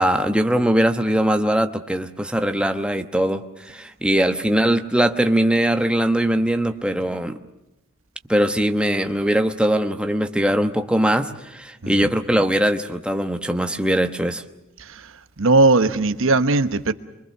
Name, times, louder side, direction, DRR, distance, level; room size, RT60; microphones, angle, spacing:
voice 1, 0.0-7.4 8.3-14.4, right 1 dB, 5° right, 1.1 m, -21 dB
voice 2, 15.4-16.9, right 2 dB, 65° right, 1.1 m, -17 dB
25.0 x 24.5 x 6.7 m
head